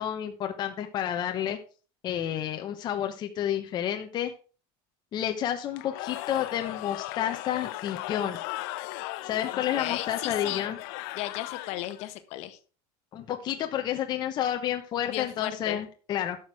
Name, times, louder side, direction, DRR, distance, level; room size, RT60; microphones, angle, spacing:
voice 1, 0.0-1.6 2.0-4.3 5.1-8.4 9.2-10.8 13.1-16.4, left 10 dB, 35° left, 4 dB, 1.0 m, -30 dB
Cheering / Crowd, 5.7-12.1, left 17 dB, 70° left, 0.8 m, -37 dB
voice 2, 9.5-10.6 11.1-12.6 15.1-15.8, left 14 dB, 55° left, 10 dB, 1.2 m, -35 dB
12.0 x 6.2 x 4.8 m, 0.37 s
cardioid pair, 155°, 13 cm